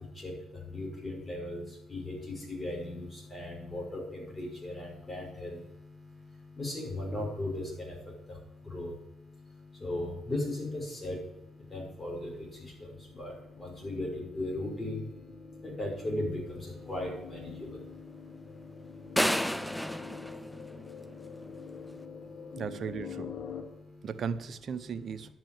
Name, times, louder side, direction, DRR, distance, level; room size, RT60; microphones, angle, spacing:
voice 1, 0.0-22.6 23.5-24.1, left 1 dB, 20° left, -2 dB, 5.7 m, -39 dB
sound 1, 10.5-23.6, left 6 dB, 80° left, 2.3 m, -47 dB
sound 2, 19.2-21.3, equal, 5° left, 0.5 m, -31 dB
voice 2, 22.6-23.3 24.0-25.3, right 6 dB, 55° right, 12 dB, 0.8 m, -36 dB
11.5 x 6.1 x 8.7 m, 0.89 s
cardioid pair, 90°, 0 cm